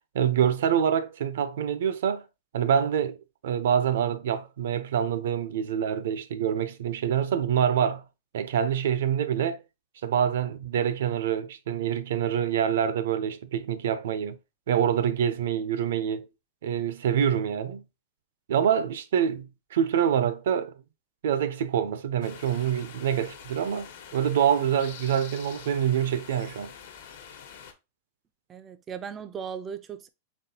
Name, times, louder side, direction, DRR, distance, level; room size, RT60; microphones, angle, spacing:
voice 1, 0.1-2.2 2.5-3.2 3.4-8.0 8.3-9.6 10.0-14.4 14.7-16.3 16.6-17.8 18.5-20.7 21.2-26.7, right 8 dB, 75° right, 0.6 m, -26 dB
sound 1, 22.2-27.7, left 7 dB, 70° left, 1.0 m, -45 dB
voice 2, 28.5-30.1, right 7 dB, 20° right, 0.3 m, -37 dB
4.2 x 3.5 x 2.8 m
supercardioid pair, 150°, 0 cm